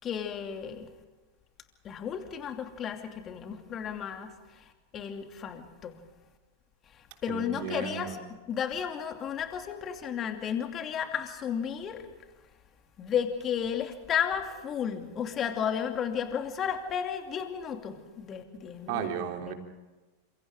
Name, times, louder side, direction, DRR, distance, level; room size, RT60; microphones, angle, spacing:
voice 1, 0.0-0.9 1.8-6.0 6.9-12.1 13.0-19.1 19.4-19.5, left 8 dB, 30° left, 6 dB, 2.7 m, -33 dB
voice 2, 7.3-8.2 18.9-19.5, right 8 dB, 45° right, 3 dB, 3.4 m, -34 dB
29.5 x 27.0 x 3.8 m, 1.2 s
figure-of-eight pair, 90°, 0 cm